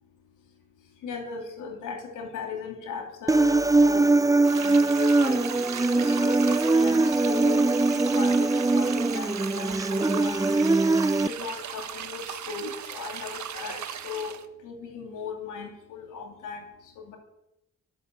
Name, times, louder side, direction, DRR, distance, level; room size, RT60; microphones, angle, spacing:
voice 1, 1.0-4.2 4.6-5.4 5.9-7.7 7.9-14.3 14.6-16.6 17.0-17.2, left 6 dB, 90° left, 2 dB, 2.7 m, -37 dB
Human voice, 3.3-11.3, right 3 dB, 10° right, 0.6 m, -22 dB
sound 1, 4.4-14.5, right 9 dB, 70° right, 1.3 m, -38 dB
22.0 x 8.1 x 8.1 m, 0.86 s
supercardioid pair, 55°, 30 cm